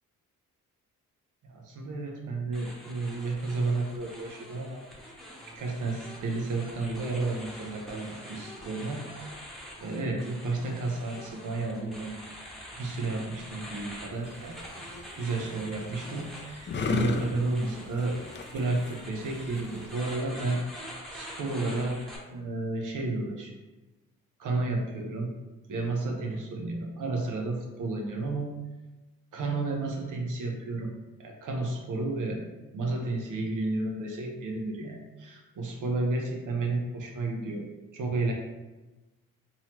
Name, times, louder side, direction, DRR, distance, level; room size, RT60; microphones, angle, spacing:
voice 1, 1.4-4.8 5.5-9.1 9.8-12.1 12.8-14.7 15.1-18.2 18.5-20.6 21.1-23.5 24.4-25.3 25.7-28.5 29.3-30.9 31.2-32.4 32.7-37.7 37.9-38.3, right 3 dB, 70° right, 1 dB, 0.9 m, -32 dB
sound 1, 2.5-22.2, equal, ahead, 1.0 m, -45 dB
sound 2, 14.1-20.2, left 4 dB, 35° left, 0.5 m, -36 dB
3.9 x 2.9 x 3.0 m, 1.1 s
cardioid pair, 65°, 33 cm